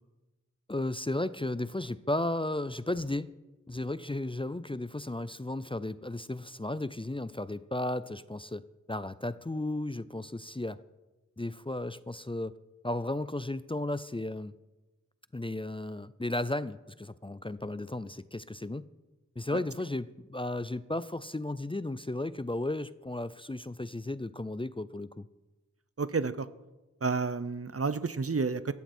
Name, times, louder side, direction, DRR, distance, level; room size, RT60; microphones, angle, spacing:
voice 1, 0.7-3.3 3.7-10.8 11.4-12.6 12.8-14.5 15.3-18.9 19.4-25.3, left 1 dB, 15° left, 15 dB, 0.5 m, -34 dB
voice 2, 26.0-26.5 27.0-28.7, right 4 dB, 50° right, 15 dB, 0.8 m, -30 dB
17.5 x 14.0 x 4.4 m, 1.1 s
wide cardioid pair, 40°, 30 cm